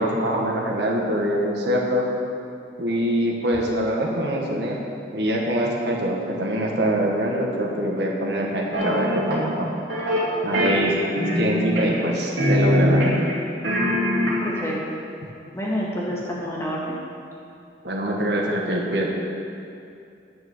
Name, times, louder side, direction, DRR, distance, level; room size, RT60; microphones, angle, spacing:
voice 1, 0.0-2.0 2.8-4.8 5.1-9.7 10.4-10.9 11.4-13.3 17.8-19.1, right 1 dB, 70° right, -1 dB, 1.5 m, -24 dB
sound 1, 8.7-9.4 9.9-10.2 10.5-12.1 12.4-13.3 13.6-14.6, equal, 85° right, 2.6 m, -22 dB
voice 2, 14.4-14.8 15.5-17.0, equal, 15° left, -5 dB, 1.8 m, -28 dB
10.5 x 6.4 x 7.2 m, 2.6 s
head